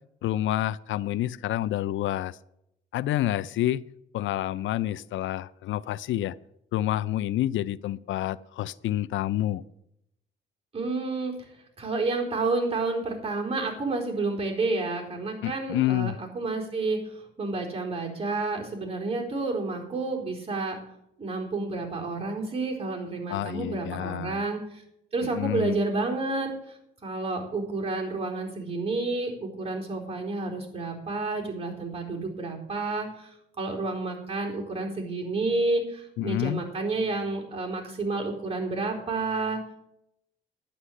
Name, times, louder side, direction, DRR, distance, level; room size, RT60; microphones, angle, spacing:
voice 1, 0.2-2.4 2.9-3.8 4.1-6.3 6.7-9.6 15.4-16.2 23.3-24.4 25.3-25.8 36.2-36.6, left 13 dB, 75° left, 19 dB, 0.5 m, -28 dB
voice 2, 10.7-11.4 11.8-20.8 21.2-24.8 25.1-26.5 27.0-39.6, right 3 dB, 30° right, 0 dB, 4.3 m, -30 dB
11.5 x 9.2 x 6.5 m, 0.78 s
cardioid pair, 90°, 20 cm